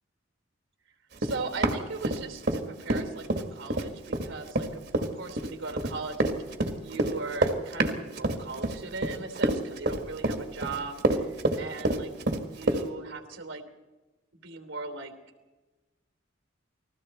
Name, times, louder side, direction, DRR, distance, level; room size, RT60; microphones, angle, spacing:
Run, 1.2-2.6 2.9-12.8, right 2 dB, 55° right, 1.8 m, -27 dB
voice 1, 1.2-4.8 5.1-6.3 6.7-12.1 12.4-13.6 14.4-15.1, right 3 dB, 80° right, 6 dB, 3.3 m, -38 dB
29.5 x 20.5 x 4.3 m, 1.2 s
head